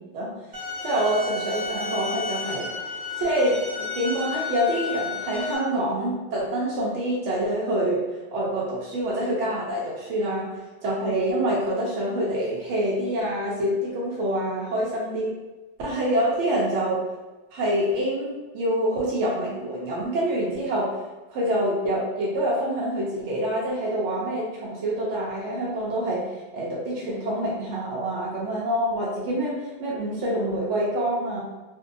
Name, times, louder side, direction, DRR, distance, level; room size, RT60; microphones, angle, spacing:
sound 1, 0.5-5.6, left 3 dB, 55° right, 0.7 m, -32 dB
voice 1, 0.8-2.7 3.2-3.6 3.9-8.0 8.3-10.5 10.8-15.3 15.8-17.0 17.5-20.9 21.3-26.2 26.5-31.4, right 1 dB, 80° right, -5 dB, 0.9 m, -26 dB
2.6 x 2.1 x 2.5 m, 1.1 s
omnidirectional pair, 1.2 m